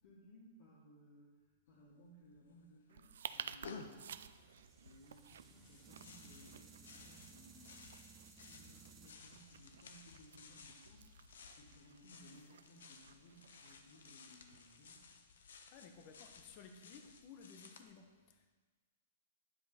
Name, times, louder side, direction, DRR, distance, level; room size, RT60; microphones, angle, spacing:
voice 1, 0.0-8.0 8.5-15.2, equal, 60° left, -7 dB, 2.3 m, -62 dB
sound 1, 1.7-1.8 2.0-2.6 3.0-17.8, left 5 dB, 85° left, 1.0 m, -57 dB
sound 2, 2.9-15.0, right 8 dB, 80° right, 0.4 m, -54 dB
sound 3, 4.1-12.2, right 6 dB, 15° right, 0.7 m, -62 dB
voice 2, 15.7-18.5, left 6 dB, 40° left, 6 dB, 1.0 m, -57 dB
9.9 x 7.7 x 4.4 m, 1.4 s
hypercardioid pair, 155°, 0 cm